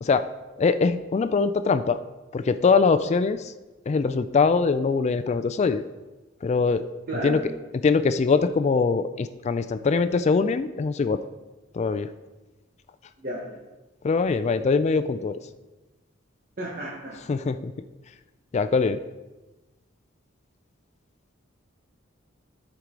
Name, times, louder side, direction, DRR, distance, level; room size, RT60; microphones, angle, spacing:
voice 1, 0.6-2.0 2.3-3.5 3.9-5.8 6.4-6.8 7.2-7.5 7.8-11.2 11.7-12.1 14.0-15.4 17.3-17.7 18.5-19.0, left 4 dB, 35° left, 11 dB, 0.3 m, -22 dB
voice 2, 7.1-7.4 13.2-13.6 16.6-17.2, right 1 dB, 45° right, -3 dB, 1.1 m, -32 dB
13.5 x 4.7 x 3.8 m, 1.1 s
head